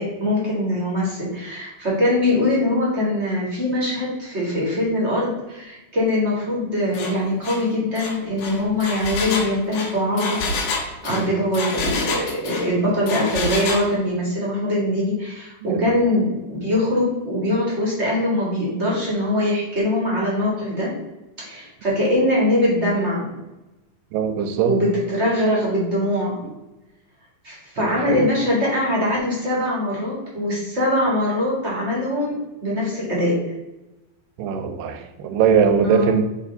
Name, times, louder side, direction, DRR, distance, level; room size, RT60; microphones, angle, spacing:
voice 1, 0.0-10.4 11.0-20.9 21.4-23.3 24.6-26.4 27.4-32.3 32.6-33.4 35.8-36.2, left 1 dB, 35° right, -5 dB, 1.1 m, -22 dB
Engine, 6.9-7.1 7.4-7.6 8.0-12.7 13.1-13.9, left 3 dB, 85° left, 3.1 m, -27 dB
voice 2, 24.1-24.8 26.4-26.5 27.8-28.3 34.4-36.2, right 7 dB, 80° right, 7 dB, 2.3 m, -21 dB
8.9 x 3.1 x 3.9 m, 1.0 s
omnidirectional pair, 4.1 m